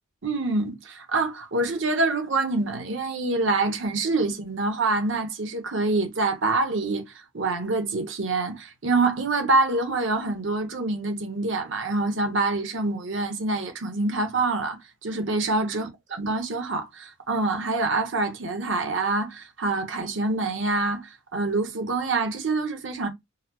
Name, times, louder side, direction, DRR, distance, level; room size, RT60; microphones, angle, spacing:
voice 1, 0.2-23.1, right 3 dB, 65° right, 0.9 m, -26 dB
3.9 x 2.0 x 2.8 m
head